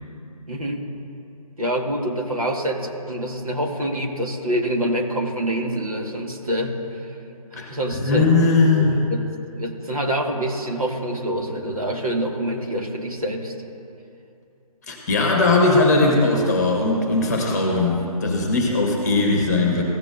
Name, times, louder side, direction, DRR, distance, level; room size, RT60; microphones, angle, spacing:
voice 1, 0.5-0.8 1.6-7.0 7.5-8.3 8.6-13.5, right 1 dB, 65° right, 1 dB, 1.6 m, -26 dB
voice 2, 7.6-9.0 14.9-19.8, left 3 dB, 25° left, 0 dB, 1.3 m, -19 dB
15.5 x 7.6 x 2.6 m, 2.6 s
figure-of-eight pair, 150°, 20 cm